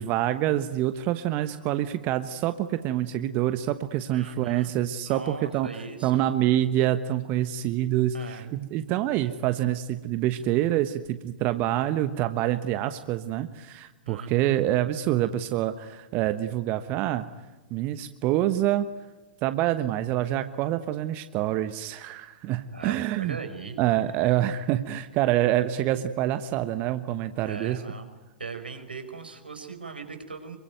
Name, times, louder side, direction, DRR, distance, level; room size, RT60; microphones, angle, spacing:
voice 1, 0.0-5.7 6.0-17.3 17.7-18.9 19.4-23.4 23.8-27.8, right 13 dB, 35° right, 11 dB, 1.2 m, -26 dB
voice 2, 4.1-4.7 5.0-6.3 8.1-8.5 14.1-14.6 22.7-23.8 24.2-24.3 27.4-28.1 28.4-30.6, right 4 dB, 80° right, 6 dB, 5.1 m, -39 dB
26.5 x 24.0 x 9.3 m, 1.2 s
figure-of-eight pair, 105°, 5 cm